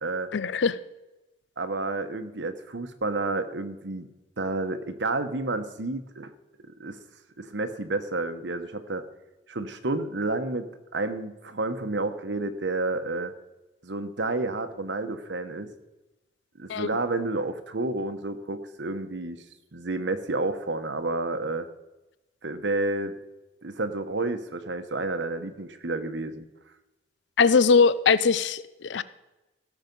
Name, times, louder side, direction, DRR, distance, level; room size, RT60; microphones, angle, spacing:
voice 1, 0.3-0.8 16.7-16.9 27.4-29.0, left 5 dB, 80° left, 16 dB, 0.5 m, -21 dB
voice 2, 1.6-4.1 4.4-6.3 6.8-7.0 7.4-9.0 9.5-13.3 13.8-15.7 16.6-19.4 19.7-21.7 22.4-23.2 23.6-26.5, right 2 dB, 80° right, 9 dB, 1.0 m, -30 dB
16.5 x 7.2 x 5.4 m, 1.0 s
head